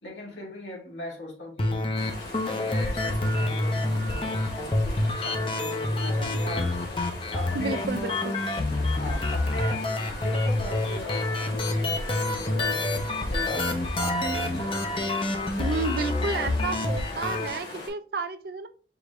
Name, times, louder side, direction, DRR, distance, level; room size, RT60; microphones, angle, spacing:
voice 1, 0.0-2.0 2.4-6.8 7.3-7.8 8.9-14.9, left 1 dB, 80° left, 2.0 m, -39 dB
sound 1, 1.6-17.6, left 2 dB, 30° left, 0.5 m, -28 dB
sound 2, 1.9-17.9, left 2 dB, 60° left, 1.6 m, -40 dB
voice 2, 7.5-8.4 15.6-18.7, right 3 dB, 55° right, 0.5 m, -31 dB
4.9 x 2.6 x 3.2 m
head